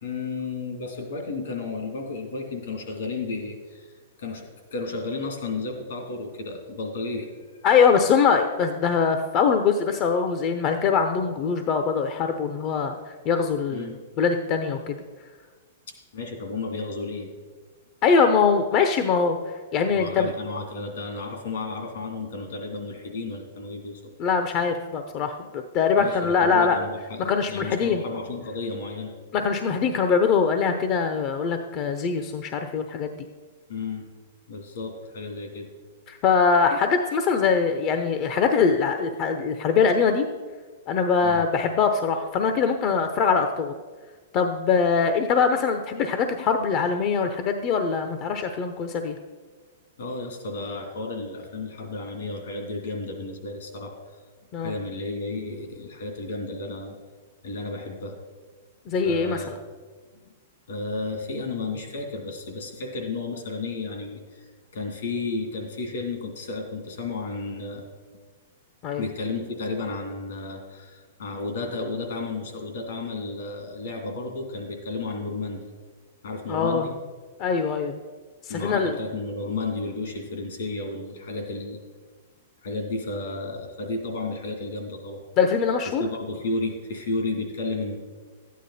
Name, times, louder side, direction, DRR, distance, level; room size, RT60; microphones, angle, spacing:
voice 1, 0.0-3.9 4.2-7.3 13.7-14.0 15.9-17.3 19.9-24.1 26.0-29.1 33.7-34.1 34.5-35.7 41.2-41.4 50.0-53.9 54.6-57.0 57.4-58.2 59.0-59.6 60.7-64.5 64.7-67.8 69.0-75.6 76.2-77.0 78.5-81.8 82.6-85.2 86.0-88.0, left 3 dB, 80° left, 2 dB, 2.9 m, -32 dB
voice 2, 7.6-13.0 13.2-13.9 14.2-15.0 18.0-19.4 19.7-20.3 24.2-26.8 27.2-28.0 29.3-33.2 36.1-40.3 40.9-43.8 44.3-49.2 54.5-54.7 58.9-59.6 68.8-69.0 76.5-76.9 77.4-78.0 78.4-79.0 85.4-86.0, left 5 dB, 40° left, 7 dB, 0.7 m, -22 dB
12.5 x 9.4 x 4.2 m, 1.4 s
hypercardioid pair, 130°, 0 cm